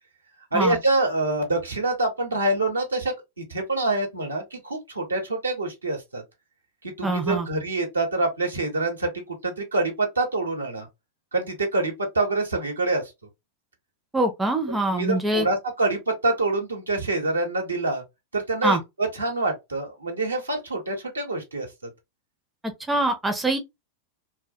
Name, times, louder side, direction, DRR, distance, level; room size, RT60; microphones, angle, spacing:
voice 1, 0.5-3.1 3.5-6.2 6.8-10.9 11.3-13.0 14.9-18.0 18.3-21.7, right 2 dB, 75° right, 0.9 m, -26 dB
voice 2, 7.0-7.5 14.1-15.5 18.6-18.8 22.9-23.6, right 2 dB, 10° right, 0.5 m, -24 dB
2.2 x 2.1 x 2.6 m
figure-of-eight pair, 90°, 0 cm